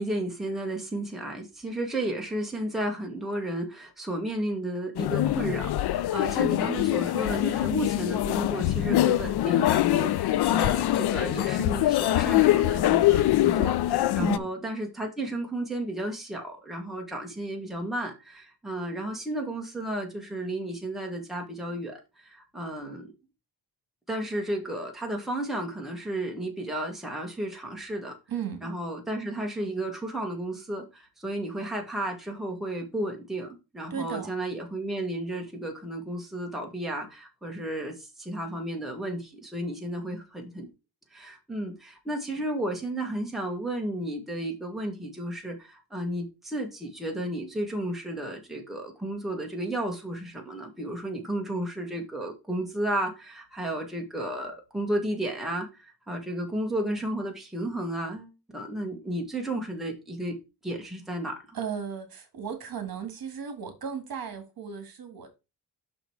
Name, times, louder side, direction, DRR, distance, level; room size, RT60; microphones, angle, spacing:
voice 1, 0.0-23.1 24.1-28.1 28.6-40.7 41.1-61.6, right 1 dB, ahead, 1.6 m, -33 dB
sound 1, 5.0-14.4, left 14 dB, 70° left, 0.5 m, -24 dB
voice 2, 28.3-28.7 33.9-34.3 61.5-65.3, right 7 dB, 60° right, 2.0 m, -35 dB
6.0 x 5.2 x 4.7 m
wide cardioid pair, 155°, 40 cm